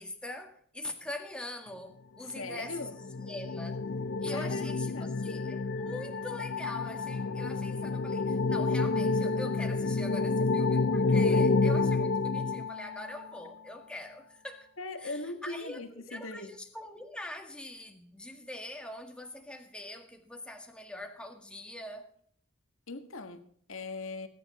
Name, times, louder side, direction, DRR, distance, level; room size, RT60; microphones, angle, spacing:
voice 1, 0.0-3.8 4.2-14.7 15.0-22.0, left 1 dB, 5° left, 1.6 m, -43 dB
voice 2, 2.2-3.0 4.3-5.2 11.1-11.4 14.8-16.6 22.9-24.3, left 3 dB, 75° left, 1.6 m, -40 dB
sound 1, 2.5-13.3, left 3 dB, 55° left, 0.5 m, -29 dB
19.5 x 10.0 x 4.2 m
head